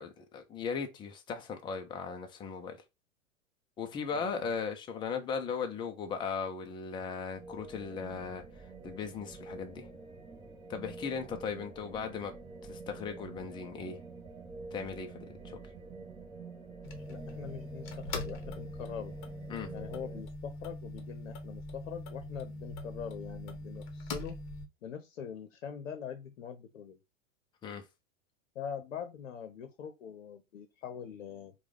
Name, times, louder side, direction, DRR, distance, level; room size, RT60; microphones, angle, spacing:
voice 1, 0.0-2.8 3.8-8.4 8.8-9.9 10.7-12.3 12.7-14.0 14.7-15.6 19.5-19.7 27.6-27.8, left 5 dB, 10° left, 0.5 m, -37 dB
voice 2, 4.1-4.5 17.1-19.1 19.7-24.4 24.8-27.0 28.5-31.5, left 8 dB, 60° left, 0.8 m, -43 dB
sound 1, 7.3-20.2, right 3 dB, 15° right, 0.8 m, -48 dB
sound 2, 16.8-24.7, left 2 dB, 30° left, 0.9 m, -42 dB
4.5 x 2.3 x 3.6 m
figure-of-eight pair, 95°, 40 cm